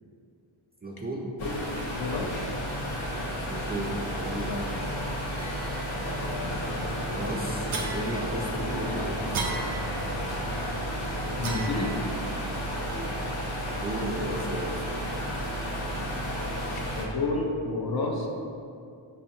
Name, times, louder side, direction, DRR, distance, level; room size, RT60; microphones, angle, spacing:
voice 1, 0.8-1.4 3.0-4.8 6.0-9.6 12.8-13.2 13.5-15.2, right 1 dB, 25° right, -2 dB, 0.3 m, -36 dB
sound 1, 1.4-17.0, equal, 80° left, 0.8 m, -32 dB
voice 2, 1.4-2.3 2.8-2.9 11.4-11.9 16.7-18.3, left 3 dB, 50° left, 0 dB, 0.6 m, -30 dB
sound 2, 5.4-6.1 7.7-8.8 9.3-10.4 11.4-12.4, right 3 dB, 75° right, 0.6 m, -37 dB
sound 3, 6.4-11.9, equal, 20° left, 1.1 m, -42 dB
5.1 x 2.2 x 2.7 m, 2.4 s
wide cardioid pair, 40°, 48 cm